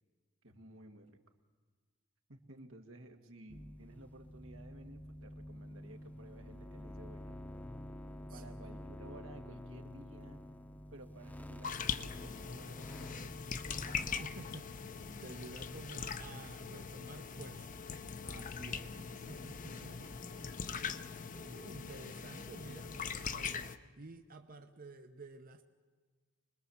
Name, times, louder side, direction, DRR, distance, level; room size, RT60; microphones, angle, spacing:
voice 1, 0.4-1.2 2.3-7.4 8.3-10.4 10.9-13.6 18.2-20.3 20.7-21.0, right 1 dB, 90° right, 4 dB, 2.1 m, -55 dB
sound 1, 3.5-14.6, equal, 10° left, 0.9 m, -49 dB
sound 2, 11.6-23.8, left 6 dB, 40° left, 0.8 m, -42 dB
voice 2, 14.2-14.9 15.2-17.8 19.3-20.1 21.3-25.6, right 2 dB, 45° right, 6 dB, 0.9 m, -51 dB
26.0 x 20.5 x 7.2 m, 1.5 s
head